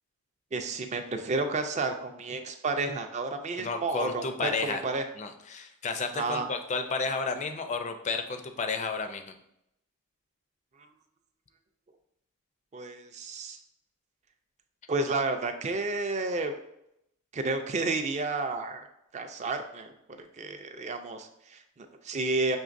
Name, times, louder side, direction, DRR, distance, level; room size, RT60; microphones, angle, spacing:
voice 1, 0.5-5.0 6.1-6.5 10.8-10.9 12.7-13.6 14.9-16.5 17.3-18.9 19.1-22.6, right 3 dB, 30° right, 6 dB, 0.4 m, -31 dB
voice 2, 3.6-4.8 5.2-9.3, left 4 dB, 30° left, 7 dB, 0.4 m, -32 dB
6.2 x 3.1 x 2.5 m, 0.79 s
head